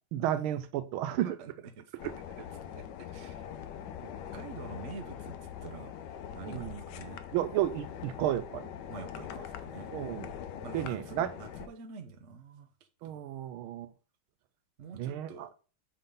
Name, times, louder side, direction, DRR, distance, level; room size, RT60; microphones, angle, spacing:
voice 1, 0.1-1.4 2.0-2.1 6.4-6.8 7.3-8.7 9.9-10.3 10.7-11.3 13.0-13.9 15.0-15.5, right 12 dB, 80° right, 1.4 m, -32 dB
voice 2, 1.2-1.8 2.7-3.4 4.0-5.3 5.6-5.9 6.3-7.2 8.9-9.9 10.5-12.7 13.0-13.2 14.8-15.5, right 5 dB, 50° right, 0.9 m, -46 dB
sound 1, 2.0-11.7, left 9 dB, 70° left, 1.1 m, -43 dB
6.6 x 3.7 x 5.4 m
omnidirectional pair, 2.4 m